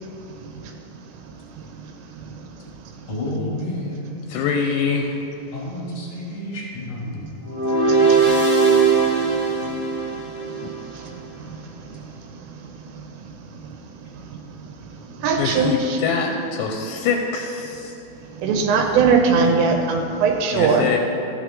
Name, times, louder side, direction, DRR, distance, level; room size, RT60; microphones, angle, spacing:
voice 1, 3.1-4.3 5.5-7.2, left 1 dB, 30° left, -4 dB, 1.2 m, -30 dB
voice 2, 4.3-5.1 15.4-17.9 20.5-21.0, left 5 dB, 80° left, 2 dB, 2.6 m, -24 dB
sound 1, 7.4-10.7, right 4 dB, 30° right, 1.6 m, -19 dB
voice 3, 15.2-16.0 18.4-20.9, right 5 dB, 85° right, 3 dB, 3.0 m, -19 dB
12.5 x 8.6 x 3.7 m, 3.0 s
omnidirectional pair, 5.1 m